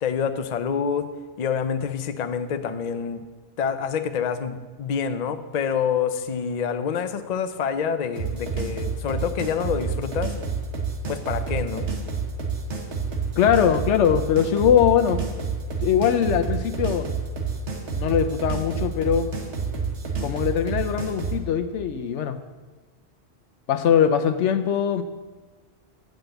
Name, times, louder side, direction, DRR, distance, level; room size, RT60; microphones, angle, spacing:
voice 1, 0.0-1.1 1.4-3.2 3.6-10.3 11.1-11.9, left 7 dB, 50° left, 9 dB, 0.6 m, -27 dB
sound 1, 8.2-21.4, right 5 dB, 80° right, 1.6 m, -29 dB
voice 2, 13.4-15.2 15.8-17.1 17.9-19.3 20.2-22.4 23.7-25.0, left 8 dB, 85° left, 9 dB, 1.0 m, -21 dB
9.0 x 5.2 x 7.8 m, 1.3 s
omnidirectional pair, 1.2 m